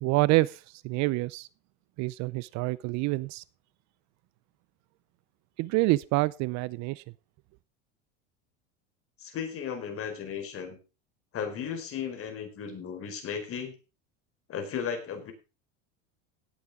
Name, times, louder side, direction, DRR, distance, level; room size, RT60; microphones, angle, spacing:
voice 1, 0.0-1.5 2.0-3.4 5.6-7.0, right 21 dB, 50° right, 0.6 m, -27 dB
voice 2, 9.2-10.8 11.3-13.7 14.5-15.3, left 7 dB, 40° left, 4.7 m, -35 dB
17.5 x 8.7 x 3.7 m
supercardioid pair, 115°, 36 cm